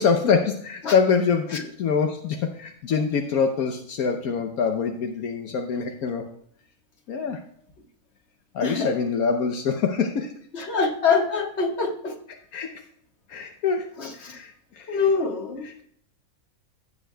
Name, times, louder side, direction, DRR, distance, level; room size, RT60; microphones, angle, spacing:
voice 1, 0.0-6.2 7.1-7.4 8.5-10.3 12.5-12.7 13.3-13.9 14.2-14.5 14.8-15.1 15.6-15.8, left 5 dB, 75° left, 4 dB, 1.2 m, -25 dB
voice 2, 10.5-12.1 14.0-14.3 14.9-15.8, left 5 dB, 50° left, 2 dB, 1.7 m, -24 dB
16.0 x 7.4 x 2.2 m, 0.66 s
omnidirectional pair, 1.6 m